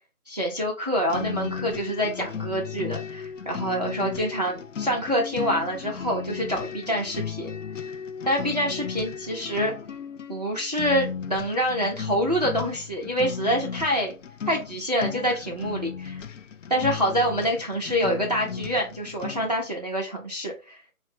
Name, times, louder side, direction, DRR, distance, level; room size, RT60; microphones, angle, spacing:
voice 1, 0.3-7.6 8.2-9.7 10.3-14.1 14.5-16.2 16.7-20.9, equal, 30° right, -1 dB, 0.5 m, -26 dB
sound 1, 1.1-19.6, left 7 dB, 60° left, 0.5 m, -35 dB
4.8 x 2.1 x 3.3 m, 0.31 s
figure-of-eight pair, 150°, 44 cm